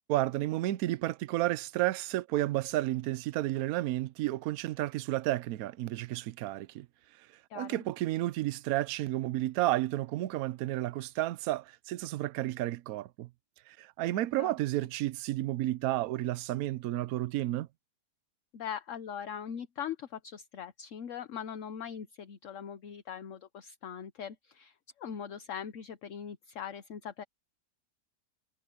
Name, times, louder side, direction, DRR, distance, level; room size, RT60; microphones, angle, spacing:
voice 1, 0.1-6.9 7.5-13.3 13.7-17.7, right 15 dB, 70° right, 1.0 m, -31 dB
voice 2, 7.5-7.8 14.4-14.5 18.5-27.2, left 8 dB, 55° left, 1.1 m, -41 dB
omnidirectional pair, 1.7 m